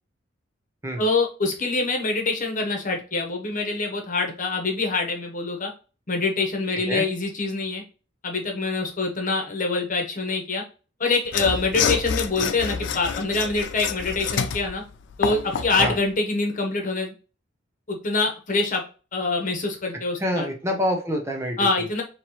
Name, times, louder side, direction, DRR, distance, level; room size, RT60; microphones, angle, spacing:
voice 1, 1.0-5.7 6.1-7.8 8.2-10.6 11.0-14.8 15.2-17.1 17.9-18.8 19.1-20.5 21.6-22.0, left 3 dB, 45° left, 3 dB, 1.0 m, -25 dB
voice 2, 6.7-7.0 15.8-16.0 20.2-21.7, equal, 15° right, 2 dB, 0.7 m, -26 dB
Mechanisms / Sawing, 11.3-16.0, left 6 dB, 65° left, 0.4 m, -28 dB
4.4 x 3.0 x 3.0 m, 0.35 s
head